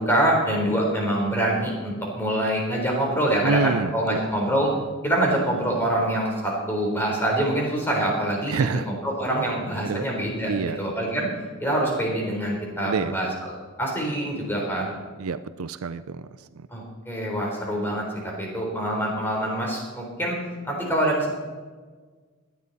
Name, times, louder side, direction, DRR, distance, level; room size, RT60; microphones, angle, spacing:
voice 1, 0.0-4.7 5.0-10.5 10.8-11.3 11.6-13.5 13.8-14.9 16.7-18.0 18.4-20.4 20.6-21.3, right 1 dB, 10° left, -2 dB, 3.8 m, -25 dB
voice 2, 3.4-4.2 8.5-8.9 9.8-10.0 10.5-10.8 12.8-13.1 15.2-16.3, right 5 dB, 85° right, 13 dB, 0.5 m, -27 dB
17.0 x 11.0 x 4.1 m, 1.5 s
head